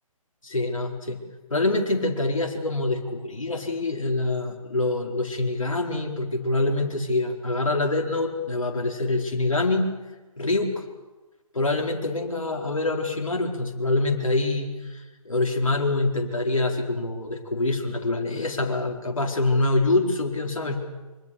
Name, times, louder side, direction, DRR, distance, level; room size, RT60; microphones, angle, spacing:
voice 1, 0.4-1.2 1.5-9.9 10.4-10.8 11.5-20.8, left 2 dB, 65° left, 2 dB, 4.4 m, -25 dB
25.5 x 24.5 x 7.2 m, 1.2 s
figure-of-eight pair, 140°, 18 cm